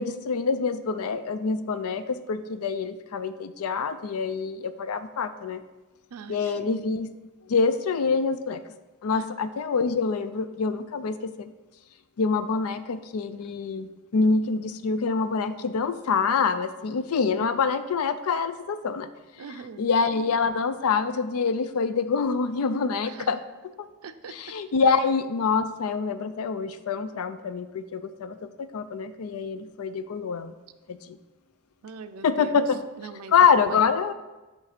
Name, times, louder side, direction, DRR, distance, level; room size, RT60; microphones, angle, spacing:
voice 1, 0.0-5.6 6.3-7.1 7.5-8.7 9.0-11.5 12.2-19.1 19.8-23.4 24.4-30.5 30.9-31.2 32.2-32.8 33.3-34.1, left 5 dB, 75° left, 12 dB, 0.4 m, -26 dB
voice 2, 6.1-6.8 9.2-9.3 19.4-19.9 23.0-23.3 24.0-24.6 24.8-25.0 31.8-33.8, right 5 dB, 70° right, 10 dB, 0.4 m, -42 dB
8.2 x 3.2 x 5.0 m, 1.1 s
head